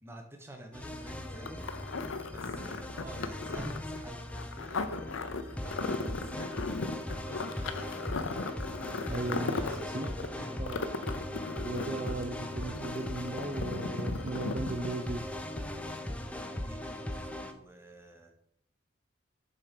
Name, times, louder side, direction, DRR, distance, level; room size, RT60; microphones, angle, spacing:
voice 1, 0.0-1.6 2.3-5.0 5.4-6.7 7.0-8.0 8.4-10.7 15.7-18.3, right 1 dB, 10° right, 3 dB, 1.0 m, -50 dB
sound 1, 0.7-17.5, left 1 dB, 5° left, 0.5 m, -39 dB
sound 2, 1.0-15.4, left 1 dB, 45° left, 1.1 m, -58 dB
sound 3, 1.4-15.2 15.6-15.7, left 3 dB, 90° left, 0.7 m, -37 dB
voice 2, 9.1-10.1 10.4-10.9 11.6-15.3, right 2 dB, 40° right, 3 dB, 0.6 m, -37 dB
7.0 x 4.7 x 5.0 m, 0.70 s
head